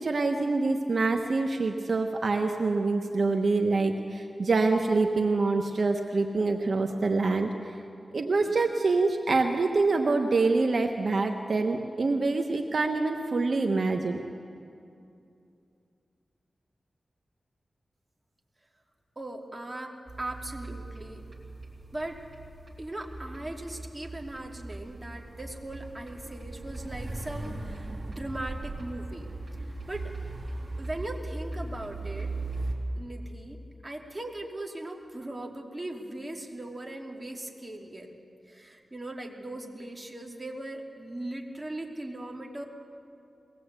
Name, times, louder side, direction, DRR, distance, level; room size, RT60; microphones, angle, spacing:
voice 1, 0.0-7.5 8.1-14.2, right 3 dB, 65° right, 4 dB, 1.1 m, -26 dB
voice 2, 19.2-21.2 21.9-22.2 22.8-29.3 29.6-30.1 30.8-32.3 33.0-38.1 38.5-42.6, right 1 dB, 25° right, 0 dB, 2.9 m, -39 dB
sound 1, 20.1-32.7, right 2 dB, 50° right, 3.3 m, -39 dB
22.0 x 18.5 x 8.3 m, 2.6 s
cardioid pair, 60°, 0 cm